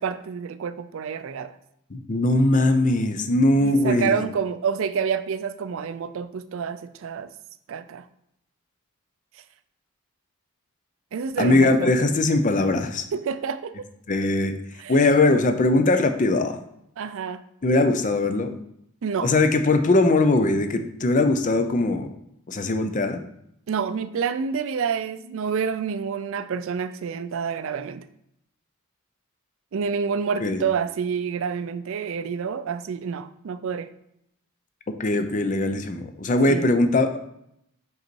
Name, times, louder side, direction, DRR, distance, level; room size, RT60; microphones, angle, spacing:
voice 1, 0.0-1.6 3.6-7.3 7.7-8.0 11.1-12.1 12.5-12.6 13.1-13.7 14.8-15.0 17.0-17.4 19.0-19.3 23.7-28.0 29.7-33.9 36.5-36.7, right 6 dB, 65° right, 0.4 m, -28 dB
voice 2, 1.9-4.1 11.4-13.0 14.1-14.5 14.9-16.6 17.6-18.5 19.2-22.1 22.5-23.2 30.4-30.6 35.0-37.2, left 2 dB, 35° left, 0.5 m, -20 dB
5.3 x 4.0 x 4.5 m
head